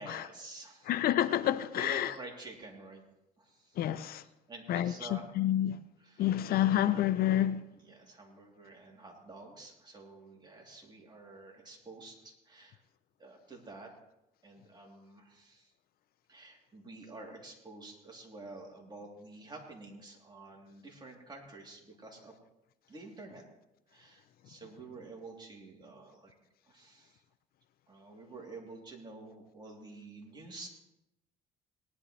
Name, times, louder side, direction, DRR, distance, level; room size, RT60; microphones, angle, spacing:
voice 1, 0.0-1.0 1.7-3.0 3.4-3.8 4.5-5.3 6.0-6.4 7.7-12.8 13.2-13.9 14.4-15.7 16.3-22.3 22.9-23.4 23.9-26.3 26.7-27.2 27.9-30.7, right 2 dB, 25° right, 3.1 m, -49 dB
voice 2, 0.9-2.1 3.8-4.2 4.7-4.9 5.4-5.8 6.2-7.6, left 12 dB, 65° left, 0.5 m, -28 dB
18.5 x 11.5 x 3.3 m
cardioid pair, 110°, 17 cm